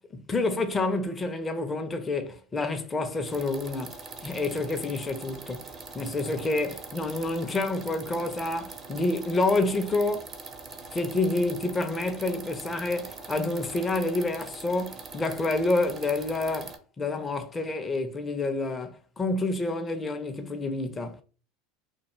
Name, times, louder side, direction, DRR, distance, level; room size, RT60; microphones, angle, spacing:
voice 1, 0.1-3.9 4.2-5.7 5.9-10.3 10.9-21.2, left 2 dB, 20° left, 0.5 m, -28 dB
sound 1, 3.3-16.8, right 3 dB, 30° right, 0.5 m, -43 dB
2.4 x 2.2 x 2.9 m
hypercardioid pair, 80°, 0 cm